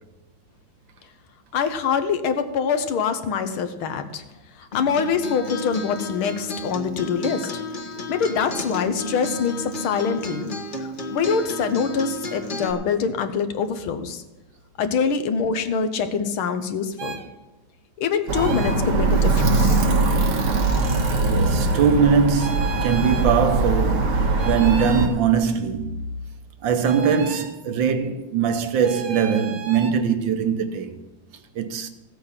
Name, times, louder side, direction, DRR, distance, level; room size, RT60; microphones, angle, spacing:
voice 1, 1.5-4.2 4.6-7.5 8.1-10.5 10.8-14.2 14.8-17.2 18.0-19.8, left 6 dB, 80° left, 1.8 m, -24 dB
Acoustic guitar, 4.7-12.7, left 1 dB, 35° left, 0.9 m, -32 dB
sound 1, 17.0-17.3 18.3-18.8 20.8-21.0 22.4-23.3 24.4-25.1 26.8-27.5 28.8-29.9, right 7 dB, 50° right, 1.1 m, -34 dB
Alarm, 18.3-25.1, right 2 dB, 85° right, 2.4 m, -21 dB
voice 2, 21.2-25.9 26.6-31.0 31.5-31.9, right 6 dB, 70° right, 1.6 m, -21 dB
15.5 x 8.4 x 5.8 m
omnidirectional pair, 2.3 m